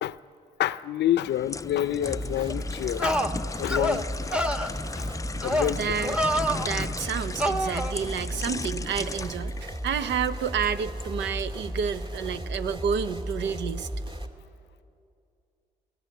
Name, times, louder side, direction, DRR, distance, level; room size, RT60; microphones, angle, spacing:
voice 1, 0.6-3.2 3.6-4.4 5.0-6.0, left 12 dB, 70° left, 0.6 m, -28 dB
sound 1, 1.1-11.1 11.5-11.7, left 3 dB, 20° left, 0.4 m, -37 dB
sound 2, 2.0-14.3, equal, 25° right, 1.9 m, -35 dB
sound 3, 2.5-2.6 3.0-3.3 3.7-4.0 4.3-4.7 5.4-5.7 6.0-6.7 7.4-7.9, equal, 5° right, 1.0 m, -26 dB
voice 2, 5.7-6.2 6.5-13.9, right 7 dB, 80° right, 0.7 m, -30 dB
18.0 x 16.0 x 9.3 m
supercardioid pair, 55°, 18 cm